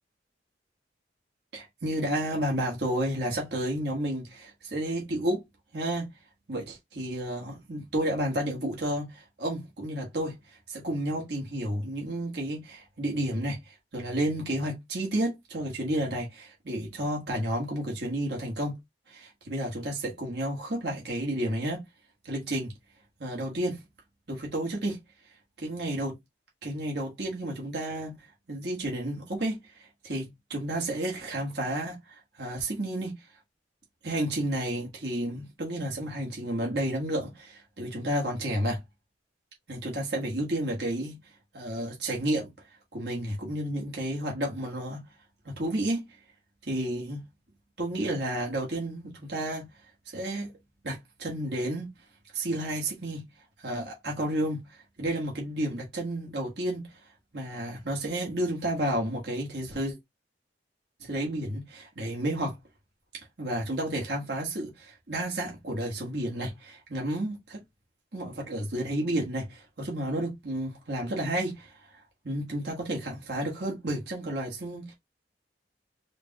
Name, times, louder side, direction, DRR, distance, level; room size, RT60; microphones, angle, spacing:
voice 1, 1.5-5.4 5.7-6.1 6.5-10.4 10.7-18.7 19.1-21.8 22.2-22.7 23.2-23.8 24.3-25.0 25.6-26.2 26.6-28.2 28.5-33.2 34.0-38.8 39.7-41.2 41.5-42.5 42.9-45.0 45.4-46.0 46.7-47.2 47.8-49.7 50.1-50.5 50.8-51.9 52.3-53.3 53.6-56.9 57.3-60.0 61.0-62.5 63.4-67.6 68.1-71.7 72.2-74.9, right 1 dB, 60° right, 1.6 m, -31 dB
5.0 x 2.4 x 3.0 m
head